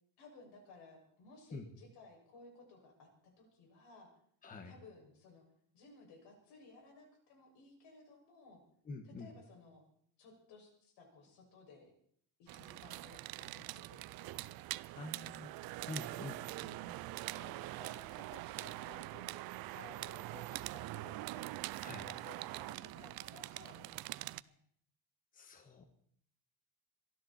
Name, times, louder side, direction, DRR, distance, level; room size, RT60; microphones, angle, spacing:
voice 1, 0.2-3.1 3.4-4.1 4.6-5.4 5.7-8.6 9.0-9.8 10.2-11.9 12.4-14.5 16.6-19.4 19.7-21.6 21.9-24.5, left 3 dB, 75° left, 1 dB, 6.4 m, -58 dB
voice 2, 4.4-4.7 8.8-9.3 14.9-15.5 15.9-16.4 21.8-22.1 25.3-25.8, left 3 dB, 20° left, 5 dB, 1.4 m, -46 dB
sound 1, 12.5-24.4, right 18 dB, 60° right, 0.5 m, -44 dB
23.0 x 13.5 x 4.3 m, 0.64 s
cardioid pair, 175°, 40 cm